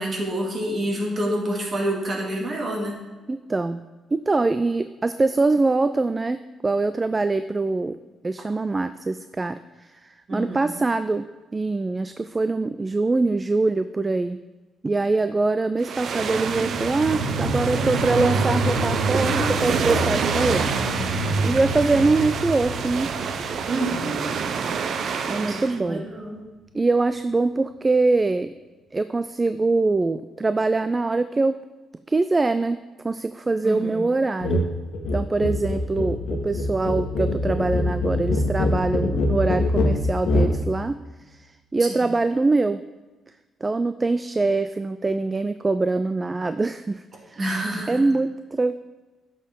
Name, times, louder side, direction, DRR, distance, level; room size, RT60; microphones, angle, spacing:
voice 1, 0.0-3.0 10.3-10.7 23.7-24.4 25.3-26.4 33.6-34.1 35.4-35.5 41.8-42.1 47.4-48.0, right 1 dB, 40° right, 0 dB, 2.3 m, -28 dB
voice 2, 3.3-3.8 4.1-8.0 8.2-11.3 11.5-14.4 14.8-20.7 21.2-23.1 25.3-26.1 26.7-28.5 28.9-31.6 32.1-32.8 33.0-34.6 35.1-41.0 41.3-42.8 43.6-47.4 47.9-48.8, right 3 dB, 25° right, 12 dB, 0.3 m, -23 dB
sound 1, 15.8-25.8, right 6 dB, 60° right, 0.6 m, -27 dB
sound 2, 15.9-25.0 25.4-25.5, right 1 dB, 85° right, 1.7 m, -28 dB
sound 3, 34.4-34.7 34.9-40.6, left 2 dB, 75° left, 1.3 m, -23 dB
10.0 x 6.5 x 3.7 m, 1.2 s
cardioid pair, 90°, 0 cm